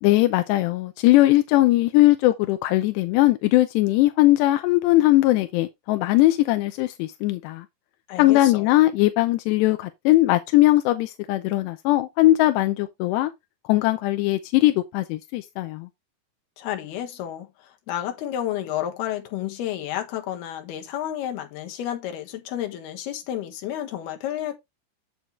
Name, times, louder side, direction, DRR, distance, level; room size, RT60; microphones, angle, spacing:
voice 1, 0.0-7.7 8.2-13.3 13.7-15.9, left 17 dB, 80° left, 2.5 m, -20 dB
voice 2, 8.1-8.7 16.6-24.6, left 11 dB, 65° left, 3.1 m, -31 dB
7.8 x 7.7 x 3.2 m
omnidirectional pair, 5.7 m